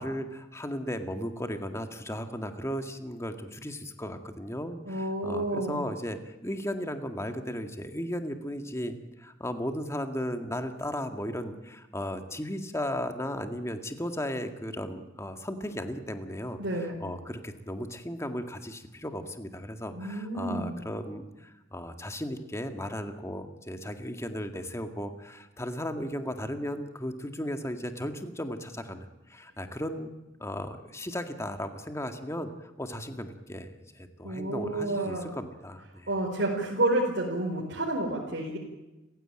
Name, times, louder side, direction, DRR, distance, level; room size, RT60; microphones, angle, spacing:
voice 1, 0.0-30.1 30.4-33.7 34.0-36.1, equal, 15° left, 7 dB, 2.0 m, -36 dB
voice 2, 4.8-5.8 16.6-16.9 19.9-20.8 34.2-35.3 36.1-38.6, right 1 dB, 60° right, -2 dB, 4.4 m, -30 dB
29.0 x 16.0 x 8.9 m, 1.0 s
head